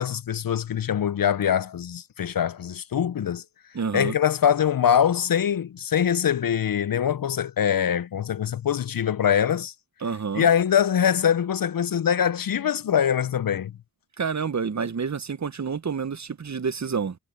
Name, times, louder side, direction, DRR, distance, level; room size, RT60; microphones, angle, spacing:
voice 1, 0.0-3.4 3.9-9.7 10.3-13.7, left 8 dB, 55° left, 0.5 m, -23 dB
voice 2, 3.7-4.1 10.0-10.5 14.2-17.2, right 6 dB, 45° right, 0.8 m, -28 dB
cardioid pair, 40°, 41 cm